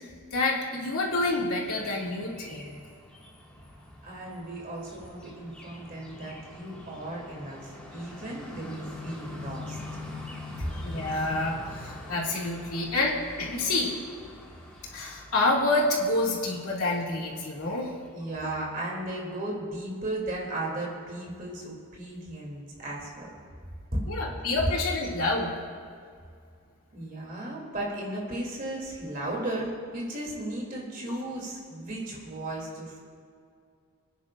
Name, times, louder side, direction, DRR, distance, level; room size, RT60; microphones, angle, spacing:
voice 1, 0.3-2.7 10.8-13.9 14.9-17.9 24.1-25.6, left 2 dB, 80° left, -4 dB, 2.4 m, -28 dB
sound 1, 1.1-18.1, left 2 dB, 5° left, 1.9 m, -45 dB
voice 2, 4.0-9.8 18.1-23.3 23.9-24.0 26.9-33.0, right 1 dB, 40° right, -3 dB, 2.8 m, -35 dB
28.0 x 10.0 x 2.5 m, 2.2 s
head